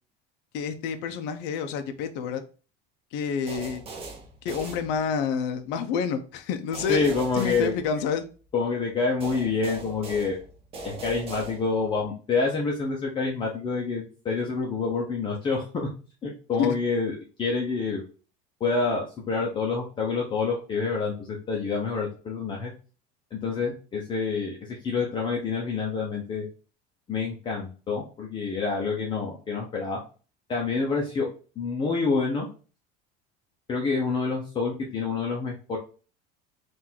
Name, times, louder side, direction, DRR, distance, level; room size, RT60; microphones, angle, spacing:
voice 1, 0.5-2.4 3.1-3.8 4.4-7.1 7.3-8.2 16.6-16.7, left 6 dB, 60° left, 8 dB, 0.6 m, -28 dB
sound 1, 3.5-5.4 6.7-8.5 9.2-12.0, right 3 dB, 25° right, 0.8 m, -40 dB
voice 2, 6.9-7.7 8.5-10.4 10.8-15.9 16.2-18.0 18.6-22.7 23.3-26.5 27.1-30.0 30.5-31.3 31.6-32.5 33.7-35.8, left 4 dB, 25° left, -2 dB, 0.7 m, -27 dB
3.7 x 2.6 x 4.4 m, 0.37 s
cardioid pair, 155°, 21 cm